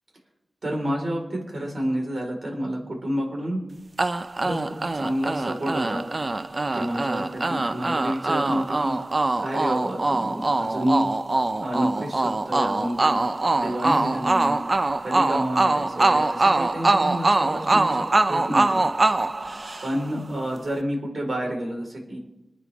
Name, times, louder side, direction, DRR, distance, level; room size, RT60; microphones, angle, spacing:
voice 1, 0.6-3.6 4.4-6.0 6.7-9.0 9.4-11.1 11.6-13.2 13.6-14.6 15.0-18.8 19.8-22.2, equal, 65° right, 0 dB, 4.5 m, -29 dB
sound 1, 4.0-20.2, right 2 dB, 45° right, 0.6 m, -23 dB
25.5 x 9.4 x 3.6 m, 0.92 s
wide cardioid pair, 60°, 0 cm